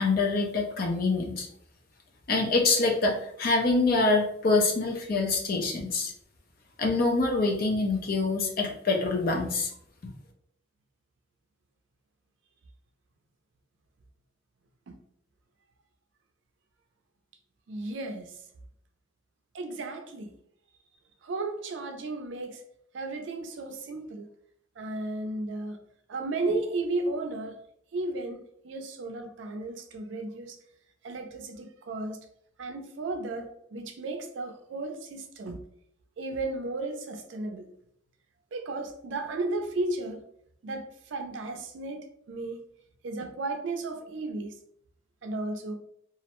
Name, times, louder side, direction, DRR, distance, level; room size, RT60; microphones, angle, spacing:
voice 1, 0.0-1.5 2.3-6.1 6.8-9.7, left 3 dB, 50° left, 2 dB, 0.5 m, -25 dB
voice 2, 17.7-18.3 19.5-20.3 21.2-22.6 22.9-24.3 24.8-25.8 26.1-27.6 27.9-30.6 31.0-32.2 32.6-35.6 36.2-37.7 38.5-40.2 40.6-42.6 43.0-44.6 45.2-45.7, right 2 dB, 65° right, 5 dB, 0.4 m, -34 dB
2.4 x 2.1 x 2.9 m, 0.70 s
head